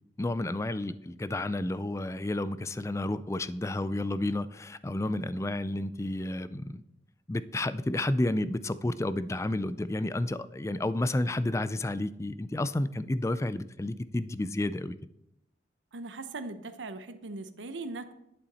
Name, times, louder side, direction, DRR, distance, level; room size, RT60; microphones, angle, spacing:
voice 1, 0.2-6.8 7.3-15.0, left 1 dB, 15° left, 15 dB, 0.3 m, -31 dB
voice 2, 15.9-18.1, right 3 dB, 90° right, 10 dB, 0.8 m, -39 dB
10.5 x 8.6 x 4.1 m, 0.82 s
head